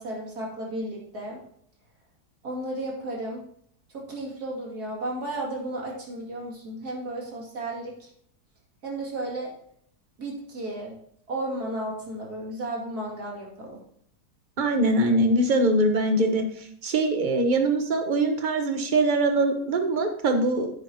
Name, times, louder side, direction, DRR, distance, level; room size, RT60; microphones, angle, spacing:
voice 1, 0.0-1.4 2.4-3.4 4.1-8.1 8.8-9.5 10.2-11.0 11.3-13.8, right 1 dB, 65° right, -2 dB, 3.0 m, -33 dB
voice 2, 14.6-20.7, right 2 dB, 35° right, 5 dB, 1.0 m, -23 dB
10.0 x 8.1 x 2.9 m, 0.65 s
omnidirectional pair, 1.8 m